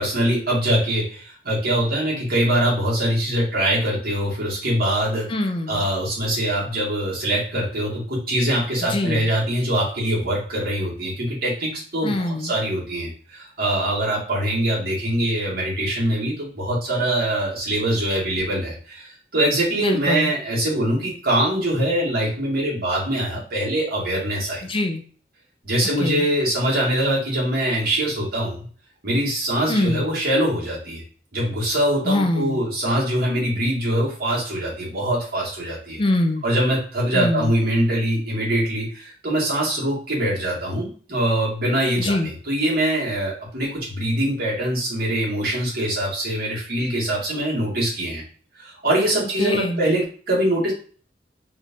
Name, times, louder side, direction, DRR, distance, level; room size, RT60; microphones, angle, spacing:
voice 1, 0.0-5.3 5.7-24.7 25.6-28.7 29.0-31.0 31.3-36.0 36.4-48.2 48.5-50.7, right 1 dB, 55° right, -5 dB, 1.8 m, -23 dB
voice 2, 5.3-5.8 8.9-9.3 12.0-12.5 19.8-20.3 24.7-25.0 26.0-26.3 29.7-30.0 32.1-32.6 36.0-36.4 37.1-37.5 42.0-42.3 49.4-49.8, left 1 dB, 30° left, 5 dB, 0.5 m, -23 dB
3.7 x 2.8 x 3.5 m, 0.43 s
head